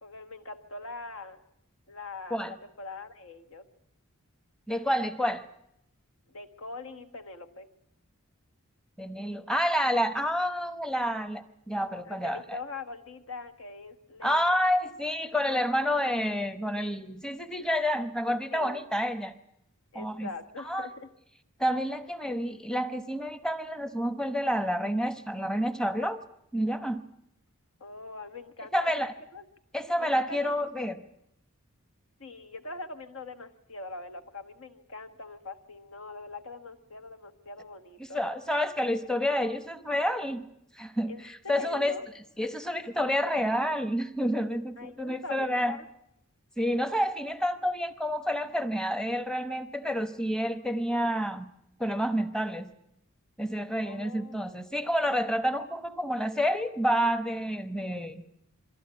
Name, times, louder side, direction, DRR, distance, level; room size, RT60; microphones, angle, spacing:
voice 1, 0.0-1.4 1.9-3.6 6.3-7.7 12.0-14.6 18.5-18.8 19.9-21.1 27.8-29.0 29.3-29.4 30.0-30.4 30.8-30.9 32.2-38.2 41.1-42.0 44.8-45.9 53.8-54.6, left 3 dB, 65° left, 8 dB, 1.6 m, -42 dB
voice 2, 4.7-5.4 9.0-12.6 14.2-19.3 19.9-20.3 20.6-20.9 21.6-26.2 26.5-27.0 28.7-29.1 29.7-31.0 38.0-40.4 40.8-41.1 41.5-42.0 42.4-45.8 46.6-51.5 51.8-52.7 53.4-58.2, equal, 5° left, 10 dB, 0.9 m, -29 dB
23.0 x 14.0 x 9.6 m, 0.78 s
head